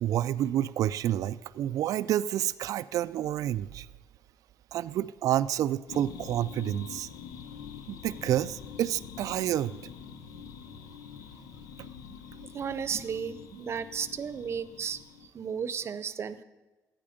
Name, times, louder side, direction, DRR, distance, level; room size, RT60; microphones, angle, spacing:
voice 1, 0.0-3.9 4.7-7.1 7.9-9.8 11.8-11.9, right 12 dB, 70° right, 15 dB, 0.3 m, -29 dB
sound 1, 5.9-15.3, left 7 dB, 85° left, 0.8 m, -45 dB
voice 2, 12.5-15.0 15.3-16.4, right 7 dB, 45° right, 14 dB, 0.7 m, -34 dB
13.5 x 9.4 x 5.1 m, 1.2 s
cardioid pair, 100°, 6 cm